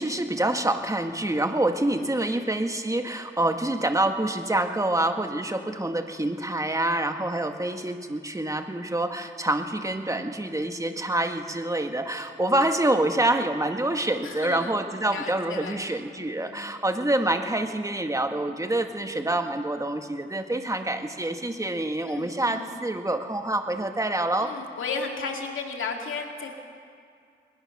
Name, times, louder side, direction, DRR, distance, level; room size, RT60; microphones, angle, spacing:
voice 1, 0.0-24.5, right 1 dB, 15° right, 6 dB, 1.7 m, -26 dB
voice 2, 2.0-2.6 14.2-14.7 15.0-15.8 16.1-16.6 22.0-22.7 24.4-26.6, left 4 dB, 80° left, 2 dB, 2.5 m, -35 dB
20.5 x 19.5 x 6.7 m, 2.3 s
cardioid pair, 60°, 20 cm